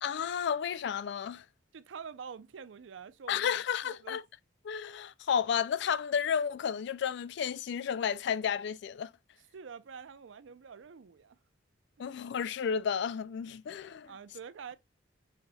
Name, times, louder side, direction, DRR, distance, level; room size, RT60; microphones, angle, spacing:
voice 1, 0.0-1.4 3.3-4.2 4.6-9.1 12.0-14.1, left 7 dB, 65° left, 0.3 m, -32 dB
voice 2, 1.7-3.6 3.8-4.2 9.5-11.4 12.0-12.1 14.1-14.8, right 6 dB, 85° right, 0.5 m, -46 dB
5.8 x 4.0 x 2.2 m
head